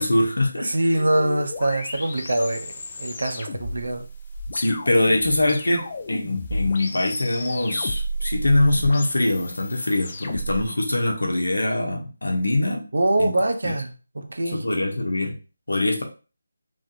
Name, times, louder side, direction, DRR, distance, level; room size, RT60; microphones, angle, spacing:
voice 1, 0.0-0.7 4.5-12.9 13.2-13.4 13.6-13.7 14.5-15.4 15.7-16.0, left 1 dB, 90° left, 0.9 m, -23 dB
voice 2, 0.6-2.7 3.0-4.0 12.9-14.7, right 1 dB, 75° right, 0.6 m, -24 dB
sound 1, 0.9-10.7, equal, 35° left, 0.4 m, -33 dB
3.2 x 2.5 x 2.8 m
figure-of-eight pair, 165°, 0 cm